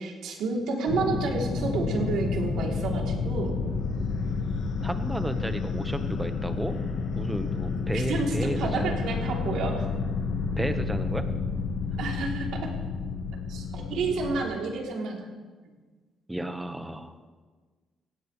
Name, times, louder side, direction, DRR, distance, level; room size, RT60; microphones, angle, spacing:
voice 1, 0.0-3.6 7.9-9.9 12.0-12.7 13.5-15.2, right 4 dB, 85° right, -1 dB, 3.4 m, -30 dB
sound 1, 0.9-14.4, left 4 dB, 75° left, 1.9 m, -30 dB
voice 2, 4.8-6.8 7.1-9.0 10.6-11.3 16.3-17.1, right 1 dB, 10° right, 7 dB, 1.4 m, -32 dB
18.5 x 16.5 x 3.4 m, 1.4 s
cardioid pair, 90°, 0 cm